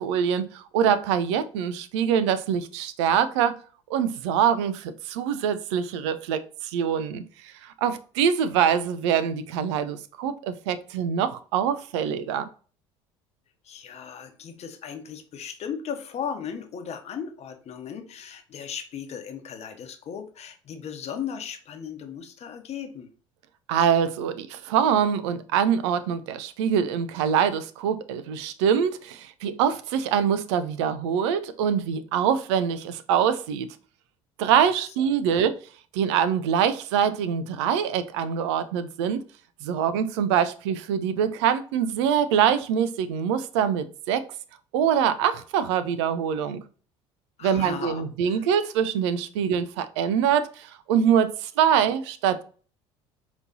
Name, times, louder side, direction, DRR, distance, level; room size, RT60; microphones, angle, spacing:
voice 1, 0.0-3.5 3.9-12.5 23.7-33.7 34.4-35.5 35.9-39.2 39.6-44.2 44.7-46.6 47.4-52.4, right 8 dB, 75° right, 0.5 m, -24 dB
voice 2, 13.6-23.1 34.7-35.4 47.4-48.4, left 7 dB, 45° left, 0.9 m, -37 dB
5.0 x 3.0 x 2.7 m
hypercardioid pair, 65°, 15 cm